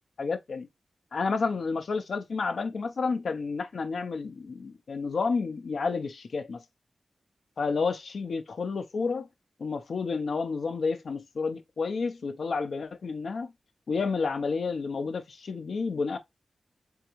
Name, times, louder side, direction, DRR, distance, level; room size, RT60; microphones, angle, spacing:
voice 1, 0.2-0.7 1.1-6.6 7.6-9.3 9.6-13.5 13.9-16.2, left 4 dB, 75° left, 0.6 m, -30 dB
3.6 x 3.5 x 2.9 m
wide cardioid pair, 110°, 0 cm